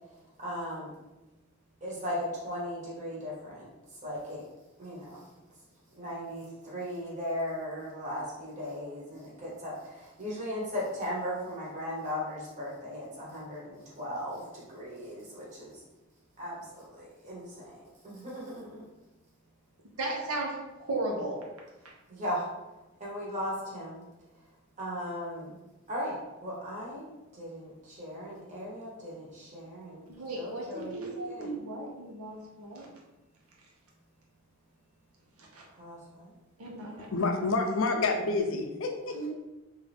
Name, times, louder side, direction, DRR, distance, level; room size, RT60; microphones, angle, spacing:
voice 1, 0.4-0.9 1.8-3.7 4.0-4.4 4.8-5.3 5.9-15.8 16.4-18.8 22.1-22.5 23.0-24.0 24.8-25.6 25.9-27.1 27.3-30.1 30.3-31.5 35.8-36.3, equal, 35° right, -6 dB, 1.2 m, -37 dB
voice 2, 20.0-21.4 30.1-32.9 35.5-35.6 36.6-37.1 39.1-39.3, right 2 dB, 85° right, -2 dB, 1.0 m, -35 dB
voice 3, 37.1-39.3, left 3 dB, 65° left, 4 dB, 0.5 m, -28 dB
3.6 x 2.7 x 3.5 m, 1.0 s
head